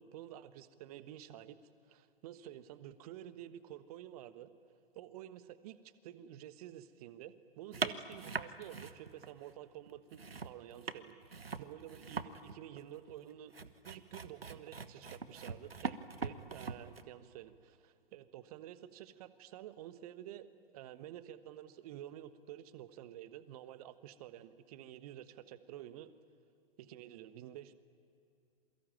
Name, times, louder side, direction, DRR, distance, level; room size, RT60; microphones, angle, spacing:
voice 1, 0.0-1.6 1.9-4.5 4.9-13.5 13.8-26.1 26.8-27.7, right 12 dB, 40° right, 13 dB, 1.4 m, -50 dB
sound 1, 7.7-9.5 9.9-17.0, right 4 dB, 80° right, 1.3 m, -42 dB
27.5 x 23.0 x 9.1 m, 2.6 s
figure-of-eight pair, 115°, 29 cm